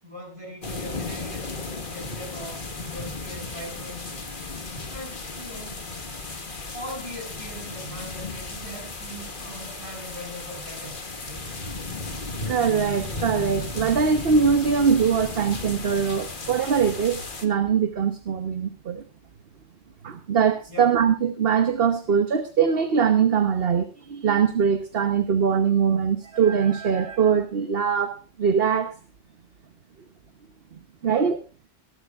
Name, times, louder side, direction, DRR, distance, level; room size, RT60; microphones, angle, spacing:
voice 1, 0.0-4.1 4.9-5.9 6.7-10.9 11.2-11.7 12.0-12.2 20.7-20.9 31.0-31.3, equal, 30° right, -2 dB, 8.0 m, -40 dB
sound 1, 0.6-17.5, left 3 dB, 50° left, 1.8 m, -35 dB
voice 2, 12.5-19.0 20.0-29.0 31.0-31.4, right 6 dB, 65° right, 7 dB, 1.3 m, -22 dB
23.0 x 12.5 x 2.4 m, 0.33 s
omnidirectional pair, 1.1 m